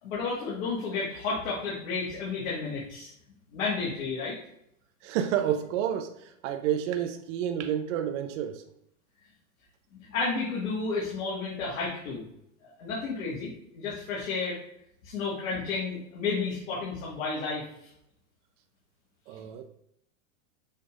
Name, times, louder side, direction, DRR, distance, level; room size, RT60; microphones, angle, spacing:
voice 1, 0.0-3.1 3.5-4.4 10.1-12.2 12.8-14.6 15.0-17.9, left 4 dB, 75° left, -6 dB, 1.7 m, -32 dB
voice 2, 5.0-8.6 19.3-19.6, right 10 dB, 65° right, 7 dB, 0.6 m, -30 dB
6.3 x 3.3 x 2.4 m, 0.77 s
supercardioid pair, 135°, 40 cm